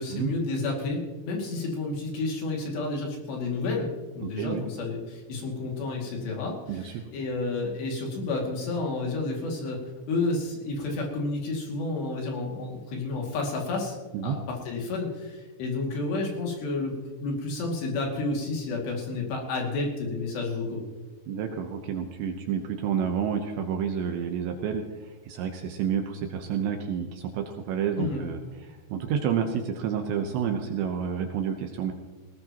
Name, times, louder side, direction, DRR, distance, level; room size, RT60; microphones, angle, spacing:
voice 1, 0.0-9.8 10.1-14.0 14.2-16.9 17.2-20.8 28.0-28.3, left 3 dB, 60° left, 0 dB, 4.3 m, -30 dB
voice 2, 4.2-4.6 6.7-7.0 14.1-14.4 21.3-31.9, right 7 dB, 75° right, 4 dB, 2.7 m, -30 dB
19.0 x 18.0 x 3.0 m, 1.2 s
omnidirectional pair, 5.9 m